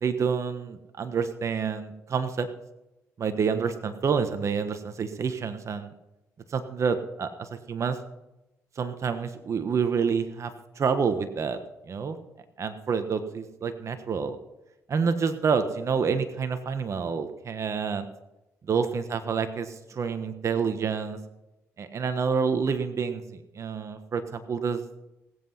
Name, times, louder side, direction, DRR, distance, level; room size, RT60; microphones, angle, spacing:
voice 1, 0.0-2.5 3.2-5.9 6.5-8.0 8.8-10.5 10.8-11.6 11.9-12.2 12.6-14.4 14.9-18.1 18.7-21.2 21.8-24.8, right 6 dB, 50° right, 9 dB, 1.3 m, -28 dB
18.5 x 7.9 x 5.7 m, 0.95 s
supercardioid pair, 65°, 6 cm